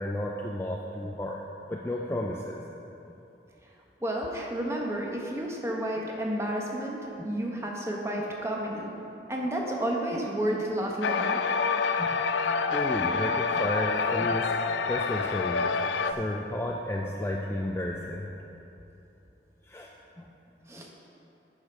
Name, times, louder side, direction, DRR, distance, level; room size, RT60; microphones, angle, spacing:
voice 1, 0.0-1.4 1.7-2.6 12.0-12.2 12.6-14.5 14.9-15.7 16.1-18.4 19.6-19.9 20.2-20.3 20.8-20.9, left 1 dB, 15° left, -1 dB, 0.4 m, -32 dB
voice 2, 4.0-8.9 9.3-11.4 20.7-20.9, right 1 dB, 15° right, -1 dB, 0.9 m, -31 dB
sound 1, 11.0-16.1, left 5 dB, 85° left, 0.4 m, -27 dB
10.5 x 5.0 x 5.0 m, 2.9 s
head